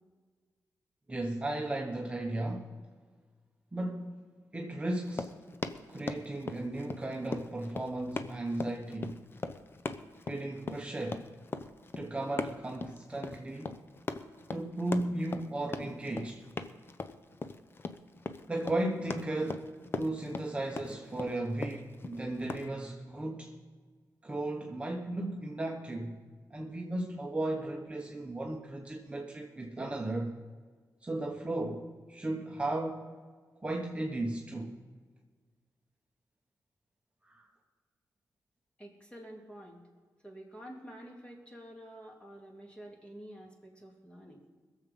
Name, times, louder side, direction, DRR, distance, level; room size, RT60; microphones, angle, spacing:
voice 1, 1.1-2.7 3.7-4.2 4.5-5.4 5.9-9.2 10.3-11.3 12.0-13.8 14.5-16.4 18.5-19.7 20.0-23.5 24.2-26.2 26.5-30.4 31.0-33.1 33.6-34.7 37.2-37.5, right 1 dB, 20° right, 1 dB, 1.1 m, -35 dB
Run, 5.0-22.7, left 3 dB, 35° left, 0.7 m, -40 dB
voice 2, 38.8-39.8 40.2-44.4, equal, 15° left, -1 dB, 3.0 m, -49 dB
21.5 x 7.3 x 5.4 m, 1.5 s
wide cardioid pair, 110°, 6 cm